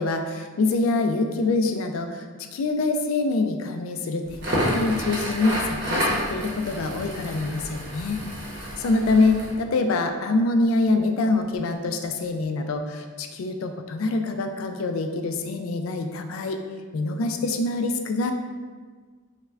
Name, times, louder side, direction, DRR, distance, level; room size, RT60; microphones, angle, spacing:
voice 1, 0.0-2.2 2.5-8.2 8.8-16.6 16.9-18.3, left 3 dB, 90° left, 6 dB, 0.3 m, -25 dB
Crackle, 4.3-9.5, equal, 55° right, 0.7 m, -29 dB
5.5 x 2.1 x 2.3 m, 1.5 s
head